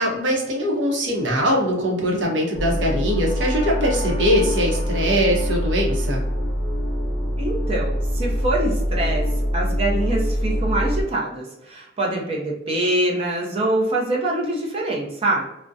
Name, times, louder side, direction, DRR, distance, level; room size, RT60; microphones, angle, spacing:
voice 1, 0.0-6.2, equal, 80° right, 0 dB, 0.7 m, -22 dB
sound 1, 2.5-11.0, equal, 20° left, 0.8 m, -24 dB
voice 2, 7.4-9.2 9.5-15.5, right 1 dB, 30° right, -4 dB, 0.5 m, -24 dB
2.3 x 2.1 x 2.6 m, 0.82 s
head